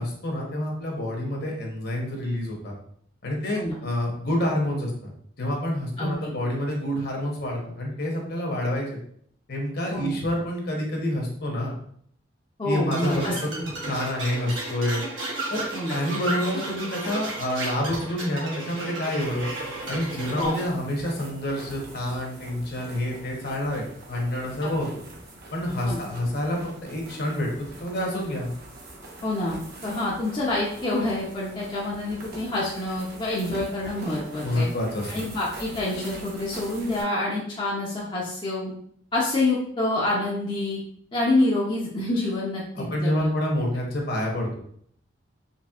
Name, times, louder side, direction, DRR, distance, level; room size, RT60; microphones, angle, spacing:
voice 1, 0.0-2.7 3.2-5.1 5.4-9.0 9.5-11.7 12.6-13.5 13.8-15.0 15.5-19.4 19.9-24.9 25.5-27.5 27.8-28.5 34.4-35.1 42.7-44.6, left 1 dB, 55° left, -1 dB, 1.0 m, -28 dB
voice 2, 6.0-6.3 9.9-10.1 12.6-13.6 15.7-16.0 20.3-20.6 24.6-24.8 25.8-26.0 29.2-34.7 35.1-38.7 39.1-40.8 41.1-43.3, left 2 dB, 25° left, -6 dB, 0.6 m, -27 dB
sound 1, 12.9-20.6, right 2 dB, 75° right, 1.3 m, -33 dB
sound 2, 19.2-37.0, right 1 dB, 55° right, 1.0 m, -43 dB
4.1 x 3.3 x 2.3 m, 0.64 s
head